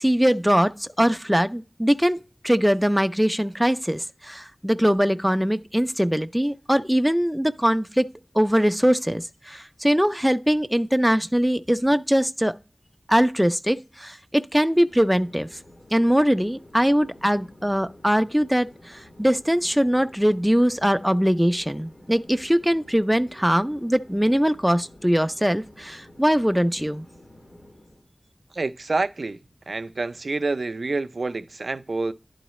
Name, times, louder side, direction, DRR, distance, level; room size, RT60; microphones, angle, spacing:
voice 1, 0.0-8.1 8.3-12.5 13.1-15.5 15.9-27.1, equal, 5° right, 0.4 m, -22 dB
Chatter / Fixed-wing aircraft airplane, 14.7-28.1, left 1 dB, 65° left, 3.3 m, -50 dB
voice 2, 28.5-29.4 29.7-32.1, right 3 dB, 75° right, 0.4 m, -27 dB
11.0 x 3.9 x 3.0 m
wide cardioid pair, 55°, 0 cm